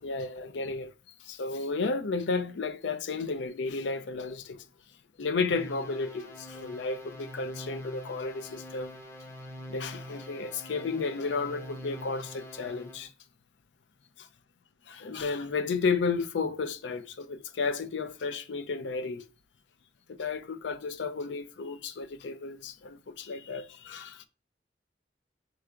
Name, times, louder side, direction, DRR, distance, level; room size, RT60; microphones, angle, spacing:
voice 1, 0.0-0.9 1.2-4.6 5.2-9.0 9.7-13.1 14.2-14.3 14.9-19.2 20.1-24.3, left 4 dB, 85° left, 0.4 m, -33 dB
sound 1, 5.5-13.1, equal, 15° left, 0.6 m, -44 dB
4.6 x 3.7 x 2.2 m
head